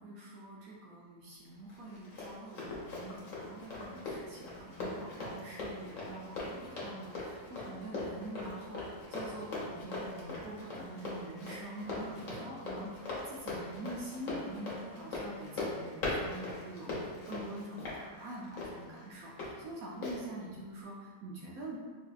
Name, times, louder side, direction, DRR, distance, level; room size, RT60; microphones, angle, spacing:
voice 1, 0.0-21.8, right 1 dB, 70° right, -4 dB, 0.9 m, -45 dB
Run, 1.7-19.5 20.0-20.2, left 2 dB, 55° left, 1.1 m, -40 dB
3.9 x 2.7 x 2.3 m, 1.4 s
omnidirectional pair, 1.9 m